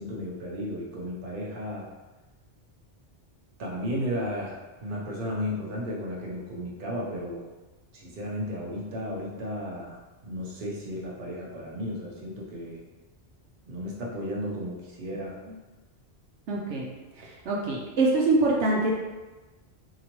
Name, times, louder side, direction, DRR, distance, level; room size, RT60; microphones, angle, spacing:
voice 1, 0.0-1.9 3.6-7.4 7.9-12.8 13.7-15.4, equal, 50° right, -3 dB, 0.9 m, -34 dB
voice 2, 16.5-16.9 17.2-18.9, right 2 dB, 75° right, -3 dB, 0.9 m, -24 dB
4.0 x 2.9 x 3.0 m, 1.2 s
omnidirectional pair, 1.2 m